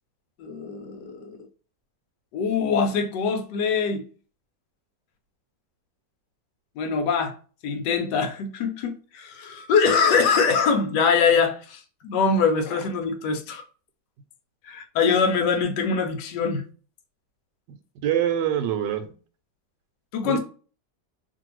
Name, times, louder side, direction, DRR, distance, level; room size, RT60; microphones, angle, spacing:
voice 1, 0.4-1.4 2.3-4.0 6.8-7.3 7.6-13.6 14.7-16.6 20.1-20.4, left 5 dB, 80° left, 1.2 m, -23 dB
voice 2, 18.0-19.0 20.2-20.4, right 10 dB, 80° right, 1.2 m, -24 dB
2.8 x 2.6 x 2.9 m
omnidirectional pair, 1.9 m